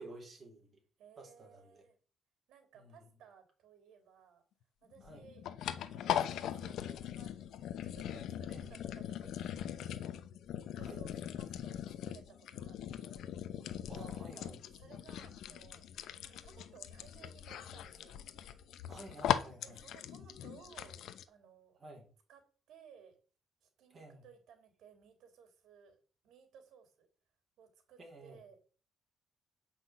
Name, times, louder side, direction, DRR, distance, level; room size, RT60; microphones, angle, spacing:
voice 1, 0.0-0.8 1.2-1.8 2.7-3.0 5.0-5.3 8.5-8.8 10.8-11.0 13.9-14.6 18.9-19.8 21.8-22.1 23.9-24.2 28.0-28.4, right 2 dB, 25° right, 0 dB, 4.4 m, -52 dB
voice 2, 1.0-2.0 2.5-4.4 4.8-13.6 14.2-18.2 19.6-21.0 21.3-21.8 22.3-22.4 22.7-23.2 23.6-26.0 26.2-27.1 27.6-28.6, right 7 dB, 75° right, 6 dB, 3.5 m, -60 dB
sound 1, 5.0-21.2, left 10 dB, 75° left, 0.8 m, -40 dB
8.4 x 6.1 x 7.8 m, 0.41 s
cardioid pair, 170°, 0 cm